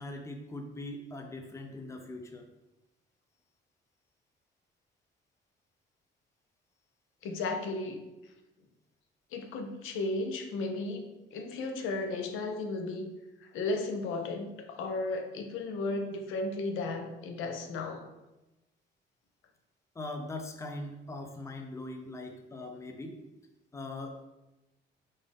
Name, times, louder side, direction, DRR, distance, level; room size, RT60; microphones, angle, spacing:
voice 1, 0.0-2.5 19.9-23.2 23.7-24.2, left 2 dB, 15° left, 4 dB, 0.5 m, -41 dB
voice 2, 7.2-8.1 9.3-11.1 11.3-13.1 13.4-18.1, left 2 dB, 85° left, 5 dB, 0.5 m, -34 dB
3.8 x 2.6 x 3.3 m, 0.99 s
cardioid pair, 90°, 20 cm